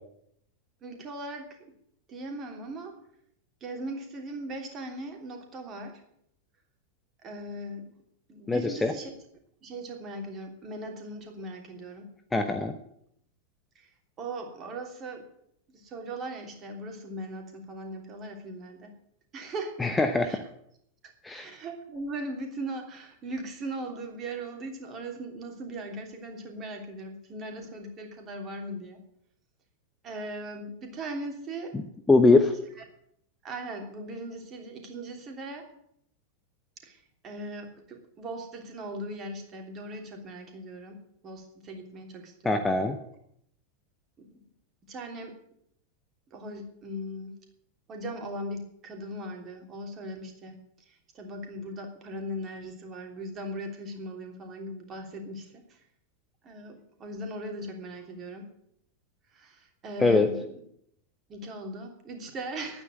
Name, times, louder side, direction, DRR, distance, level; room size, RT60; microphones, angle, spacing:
voice 1, 0.8-1.8 2.1-2.9 3.6-6.0 7.2-7.9 8.3-9.1 9.6-12.1 13.7-13.9 14.2-15.3 15.7-18.9 19.3-19.8 20.2-20.4 21.0-29.0 30.0-31.8 32.1-32.2 33.4-35.7 36.8-42.7 44.2-44.3 44.8-45.4 46.3-47.4 47.9-55.8 56.4-58.5 59.3-60.5 61.3-62.8, right 1 dB, 30° right, 3 dB, 3.2 m, -39 dB
voice 2, 8.5-8.9 12.3-12.7 19.8-20.4 21.2-21.5 32.1-32.5 42.4-43.0 60.0-60.3, left 3 dB, 10° left, 7 dB, 1.0 m, -22 dB
10.5 x 9.5 x 9.2 m, 0.71 s
figure-of-eight pair, 90°, 0 cm